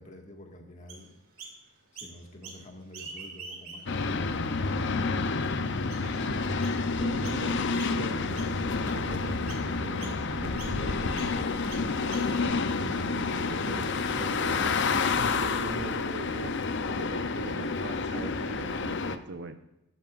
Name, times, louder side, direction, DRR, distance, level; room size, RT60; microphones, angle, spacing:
voice 1, 0.0-1.5 1.9-4.0 17.0-17.6, left 1 dB, 35° left, 2 dB, 1.8 m, -49 dB
Chirp tweet, 0.9-1.6 1.9-2.6 2.9-4.1 4.6-4.7 5.4-5.5 5.9-6.2 6.6-6.8 7.2-7.4 7.8-8.1 8.3-9.0 9.5-9.7 10.0-10.2 10.6-10.8 11.1-11.3 11.7-12.5, right 4 dB, 85° right, 2.6 m, -45 dB
sound 1, 3.9-19.2, left 4 dB, 60° left, 0.7 m, -29 dB
voice 2, 6.0-6.6 7.0-7.6 7.9-11.5 12.1-14.9 15.3-19.6, right 2 dB, 55° right, 8 dB, 0.9 m, -41 dB
13.0 x 12.0 x 2.5 m, 0.89 s
head